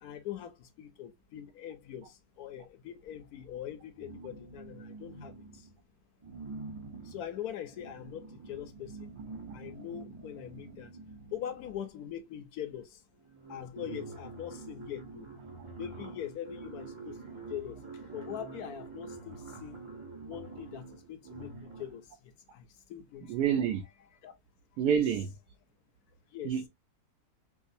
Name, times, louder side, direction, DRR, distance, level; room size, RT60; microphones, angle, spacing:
voice 1, 0.0-5.7 7.0-9.1 9.5-10.9 11.3-13.0 13.5-15.3 15.8-17.8 18.1-19.8 20.2-23.4 24.2-24.3 24.8-25.0 26.3-26.6, left 10 dB, 70° left, 1.0 m, -42 dB
sound 1, 3.9-5.8 6.2-11.9 12.8-12.9 13.2-22.1, right 4 dB, 45° right, 0.4 m, -46 dB
voice 2, 23.3-23.8 24.8-25.3 26.4-26.7, right 8 dB, 75° right, 1.1 m, -27 dB
4.9 x 2.0 x 2.5 m
omnidirectional pair, 1.8 m